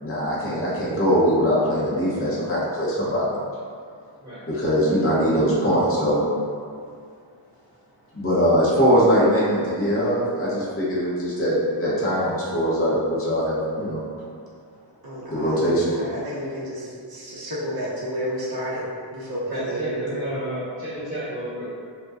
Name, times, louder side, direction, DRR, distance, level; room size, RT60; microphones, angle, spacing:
voice 1, 0.0-3.4 4.5-6.2 8.1-14.0 15.3-16.0, equal, 30° left, -7 dB, 0.7 m, -21 dB
voice 2, 4.2-4.5 5.3-5.4 19.5-21.7, right 1 dB, 15° right, -13 dB, 1.2 m, -32 dB
voice 3, 15.0-16.8 17.1-18.8 19.1-20.0, equal, 50° right, -7 dB, 0.8 m, -31 dB
2.6 x 2.1 x 2.3 m, 2.2 s
cardioid pair, 50°, 48 cm